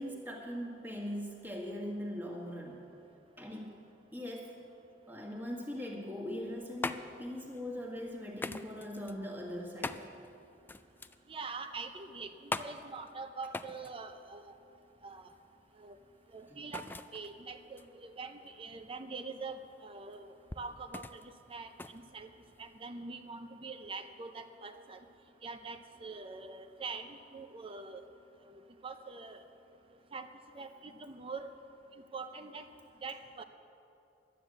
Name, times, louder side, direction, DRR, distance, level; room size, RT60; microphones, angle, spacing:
voice 1, 0.0-2.9 3.4-3.8 4.1-4.6 5.1-10.1 16.5-16.6, equal, 10° right, -1 dB, 1.8 m, -40 dB
sound 1, 6.3-22.9, left 2 dB, 10° left, 0.3 m, -44 dB
voice 2, 11.3-14.5 15.0-15.3 15.8-16.0 16.3-20.3 20.6-21.2 21.5-22.3 22.6-25.0 25.4-28.0 28.5-29.4 30.1-30.3 30.5-31.5 32.1-32.7 33.0-33.4, right 4 dB, 30° right, 8 dB, 0.6 m, -44 dB
12.0 x 10.0 x 7.7 m, 2.7 s
head